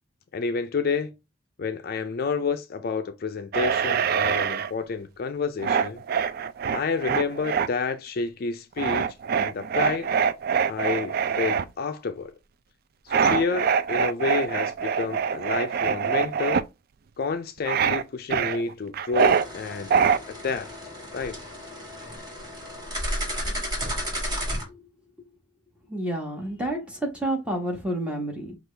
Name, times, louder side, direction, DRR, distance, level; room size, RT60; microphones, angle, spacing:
voice 1, 0.3-1.1 1.6-6.0 6.7-10.1 10.6-12.3 13.1-16.6 17.2-19.9 20.4-20.7 21.1-21.4, left 4 dB, 50° left, 0.4 m, -29 dB
sound 1, 3.5-4.7 5.6-7.7 8.8-11.6 13.1-16.6 17.6-18.0 18.3-19.5 19.9-20.2, right 7 dB, 50° right, 0.3 m, -24 dB
sound 2, 19.2-24.6, equal, 20° right, 1.8 m, -33 dB
voice 2, 24.5-24.9 25.9-28.5, right 1 dB, 5° right, 1.4 m, -30 dB
6.1 x 2.4 x 3.3 m
head